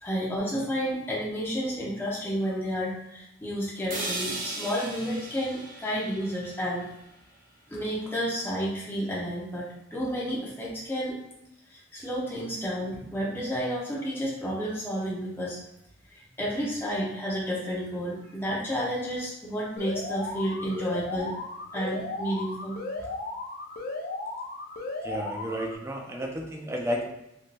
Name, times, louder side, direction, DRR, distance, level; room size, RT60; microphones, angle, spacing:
voice 1, 0.0-6.9 7.7-11.2 11.7-15.6 16.1-21.3 21.7-22.8, equal, 10° left, -6 dB, 0.7 m, -31 dB
sound 1, 3.9-7.9, right 2 dB, 45° right, 0.7 m, -38 dB
Alarm, 19.8-25.8, left 2 dB, 50° left, 0.5 m, -35 dB
voice 2, 25.0-27.1, equal, 15° right, 2 dB, 0.3 m, -32 dB
3.5 x 2.6 x 2.5 m, 0.86 s
head